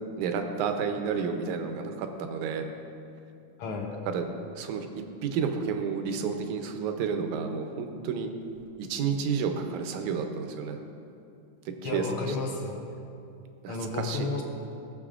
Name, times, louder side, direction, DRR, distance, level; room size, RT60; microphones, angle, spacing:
voice 1, 0.2-2.7 4.1-4.3 4.6-4.9 5.2-8.3 8.8-10.8 11.8-12.3 13.6-14.3, right 6 dB, 80° right, 5 dB, 2.1 m, -30 dB
voice 2, 3.6-3.9 11.8-12.8 13.7-14.4, left 3 dB, 75° left, 1 dB, 1.2 m, -32 dB
18.5 x 6.8 x 2.5 m, 2.6 s
omnidirectional pair, 3.4 m